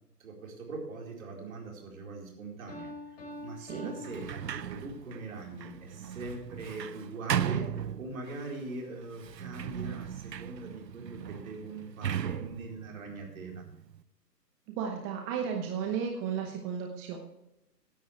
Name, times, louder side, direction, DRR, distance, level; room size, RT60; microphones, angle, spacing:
voice 1, 0.2-13.6, right 3 dB, 55° right, 0 dB, 4.4 m, -42 dB
Piano, 2.7-5.1, left 1 dB, 35° left, 5.5 m, -45 dB
voice 2, 3.6-3.9 14.7-17.2, right 7 dB, 15° right, 2 dB, 0.9 m, -34 dB
Sliding door, 4.0-8.5 9.1-14.0, right 9 dB, 80° right, 0.7 m, -37 dB
16.0 x 10.5 x 3.3 m, 0.86 s
figure-of-eight pair, 130°, 50 cm